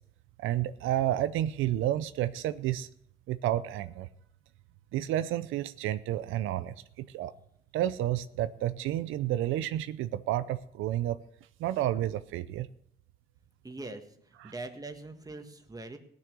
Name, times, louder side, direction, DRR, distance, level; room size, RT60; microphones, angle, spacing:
voice 1, 0.4-2.9 3.3-4.1 4.9-7.3 7.7-11.2 11.6-12.7 14.4-14.5, right 13 dB, 90° right, 13 dB, 0.6 m, -30 dB
voice 2, 13.6-16.0, right 2 dB, 20° right, 6 dB, 1.7 m, -42 dB
17.5 x 6.3 x 6.7 m, 0.72 s
cardioid pair, 90°, 20 cm